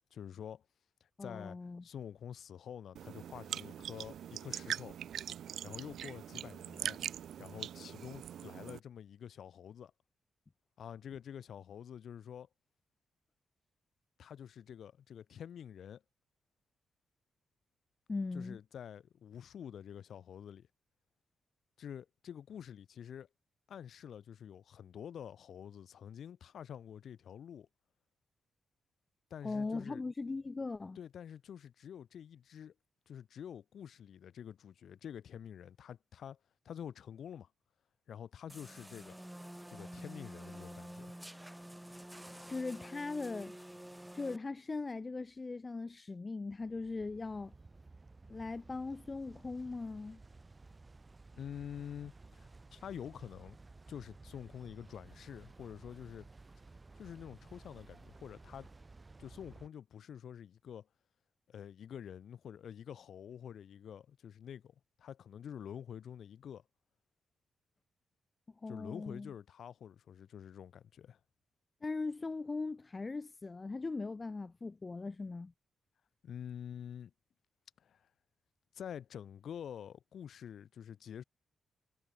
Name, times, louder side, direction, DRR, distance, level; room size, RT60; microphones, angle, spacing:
voice 1, 0.1-0.6 1.0-5.0 5.6-7.0 7.4-9.9 10.8-12.5 14.2-16.0 18.3-20.7 21.8-23.3 23.7-27.7 29.3-30.0 31.0-32.7 33.1-36.4 36.6-37.5 38.1-39.2 39.7-41.2 51.4-53.6 53.9-56.3 57.0-58.7 59.2-60.9 61.5-66.6 68.7-71.2 76.2-77.1 77.8-78.1 78.7-81.2, left 9 dB, 75° left, 2.1 m, -48 dB
voice 2, 1.2-1.8 18.1-18.6 29.4-31.0 42.5-43.5 44.1-47.5 48.3-50.2 68.6-69.3 71.8-75.5, left 3 dB, 35° left, 0.6 m, -39 dB
sound 1, 3.0-8.8, right 9 dB, 75° right, 0.6 m, -42 dB
sound 2, 38.5-44.4, right 1 dB, 5° right, 1.9 m, -49 dB
Boat Passing By (No Processing), 46.5-59.7, right 3 dB, 30° right, 5.4 m, -56 dB
cardioid pair, 60°, 0 cm